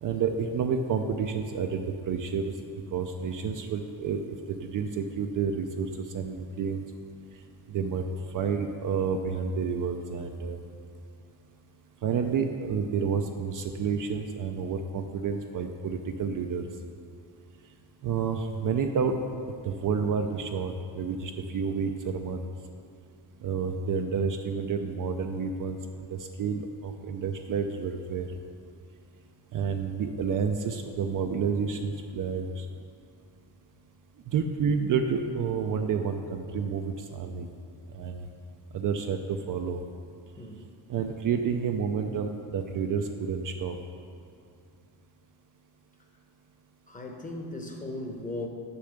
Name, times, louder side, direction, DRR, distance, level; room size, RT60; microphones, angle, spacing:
voice 1, 0.0-2.5 2.9-6.8 7.7-8.0 8.3-10.6 12.0-16.7 18.0-19.2 19.6-22.5 23.4-25.8 26.1-28.3 29.5-32.7 34.3-37.5 37.9-38.2 38.7-39.8 40.9-43.8, right 6 dB, 45° right, 5 dB, 0.5 m, -30 dB
voice 2, 46.9-48.5, left 2 dB, 15° left, 2 dB, 1.0 m, -37 dB
6.9 x 5.7 x 6.4 m, 2.5 s
cardioid pair, 115°, 46 cm